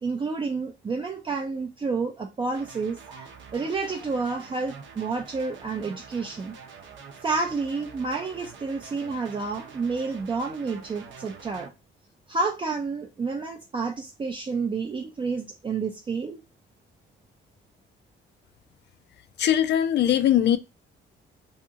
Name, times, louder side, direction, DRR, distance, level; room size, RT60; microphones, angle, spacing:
voice 1, 0.0-6.5 7.2-11.7 12.3-16.4, right 4 dB, 25° right, 0.4 m, -30 dB
sound 1, 2.5-11.7, right 6 dB, 70° right, 0.6 m, -46 dB
voice 2, 19.4-20.6, left 11 dB, 60° left, 0.4 m, -20 dB
2.7 x 2.7 x 2.4 m
cardioid pair, 90°, 20 cm